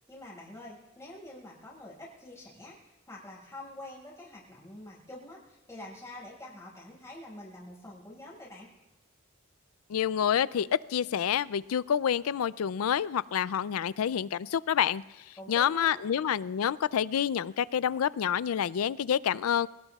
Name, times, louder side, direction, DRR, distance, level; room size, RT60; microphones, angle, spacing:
voice 1, 0.0-8.7 15.4-16.0, left 1 dB, 15° left, -5 dB, 5.4 m, -46 dB
voice 2, 9.9-19.7, left 8 dB, 85° left, 19 dB, 0.4 m, -28 dB
26.0 x 18.0 x 2.4 m, 1.1 s
head